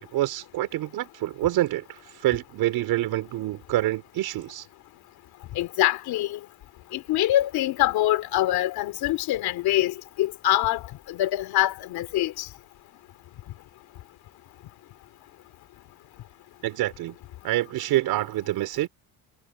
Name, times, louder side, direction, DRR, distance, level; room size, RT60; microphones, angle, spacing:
voice 1, 0.1-4.6 16.6-17.2 17.4-18.9, right 15 dB, 85° right, 4.3 m, -26 dB
voice 2, 5.5-6.4 6.9-10.8 11.1-12.5, left 14 dB, 90° left, 2.8 m, -24 dB
cardioid pair, 175°, 36 cm